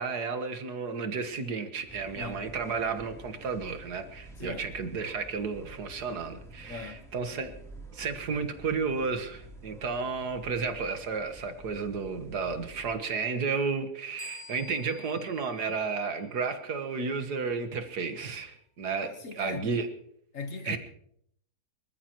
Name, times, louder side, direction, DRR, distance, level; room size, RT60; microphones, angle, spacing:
voice 1, 0.0-7.6 7.9-19.1 19.4-19.9 20.7-20.8, right 5 dB, 70° right, 1.9 m, -32 dB
sound 1, 1.9-13.0, right 1 dB, ahead, 3.0 m, -49 dB
voice 2, 4.4-4.7 6.7-7.1 19.0-19.7 20.3-20.8, left 4 dB, 50° left, 1.5 m, -39 dB
sound 2, 14.2-16.7, left 2 dB, 20° left, 0.8 m, -51 dB
25.5 x 14.0 x 3.0 m
omnidirectional pair, 1.8 m